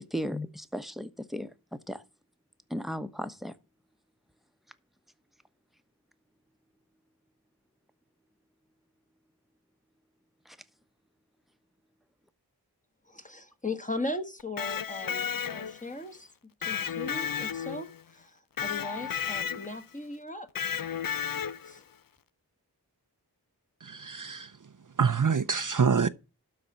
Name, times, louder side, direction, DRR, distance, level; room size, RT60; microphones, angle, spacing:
voice 1, 0.0-1.5 1.9-2.0 2.7-3.5 10.5-10.6, equal, ahead, 1.0 m, -35 dB
voice 2, 13.1-15.2 15.5-16.3 16.7-20.5 21.6-21.8, left 2 dB, 20° left, 1.5 m, -38 dB
Electric guitar, 14.4-15.9 16.6-18.0 18.6-19.8 20.6-21.8, left 8 dB, 60° left, 0.5 m, -33 dB
voice 3, 23.9-24.5 25.0-26.1, right 6 dB, 50° right, 0.6 m, -25 dB
12.0 x 4.2 x 7.2 m
wide cardioid pair, 45°, 40 cm